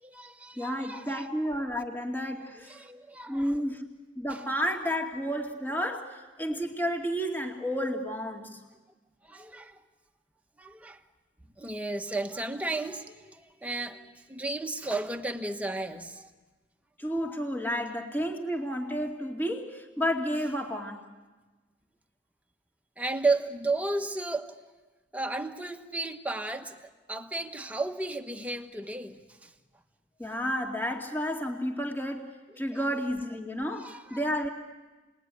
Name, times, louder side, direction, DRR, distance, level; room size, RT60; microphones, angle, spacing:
voice 1, 0.0-1.3 2.5-3.5 4.3-4.4 9.2-9.8 10.6-11.0 11.6-16.3 23.0-24.5 25.1-29.5 32.7-32.8 33.8-34.2, right 2 dB, 10° right, 1.4 m, -34 dB
voice 2, 0.6-2.8 3.3-3.9 4.2-8.6 17.0-21.1 30.2-34.5, equal, 10° left, 2.4 m, -31 dB
29.0 x 21.0 x 9.7 m
head